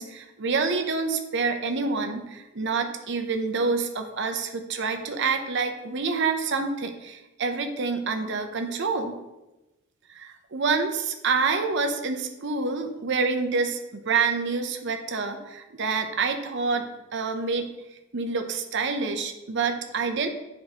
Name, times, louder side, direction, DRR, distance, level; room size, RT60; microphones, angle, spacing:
voice 1, 0.0-9.2 10.1-17.7 18.1-20.3, right 4 dB, 60° right, 6 dB, 0.7 m, -27 dB
8.8 x 4.6 x 2.9 m, 1.0 s
head